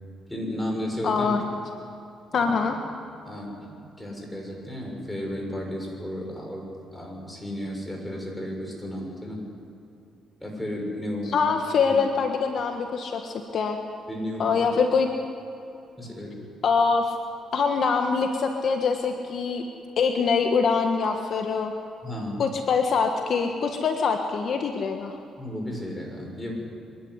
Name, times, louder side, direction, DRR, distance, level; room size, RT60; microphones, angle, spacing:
voice 1, 0.3-1.3 2.3-2.6 3.2-6.7 6.9-9.4 10.4-11.5 11.8-12.0 14.1-14.6 16.0-16.4 22.0-22.5 25.4-26.5, equal, 10° left, -1 dB, 6.7 m, -33 dB
voice 2, 1.0-1.4 2.3-2.7 11.3-13.8 14.4-15.1 16.6-17.1 17.5-19.6 20.0-21.7 22.4-25.2, left 5 dB, 60° left, 4 dB, 1.5 m, -24 dB
26.0 x 11.5 x 9.8 m, 2.7 s
cardioid pair, 90°, 0 cm